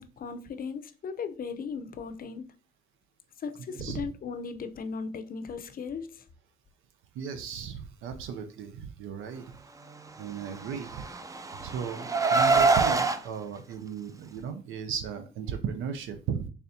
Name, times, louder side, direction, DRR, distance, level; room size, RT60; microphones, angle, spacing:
voice 1, 0.0-2.5 3.4-6.2, left 5 dB, 45° left, 0.5 m, -37 dB
voice 2, 3.7-4.0 7.1-9.6 10.2-11.1 11.5-16.5, right 7 dB, 85° right, 0.5 m, -36 dB
Car, 10.7-13.2, right 4 dB, 15° right, 0.4 m, -24 dB
4.2 x 3.4 x 2.7 m
cardioid pair, 90°, 20 cm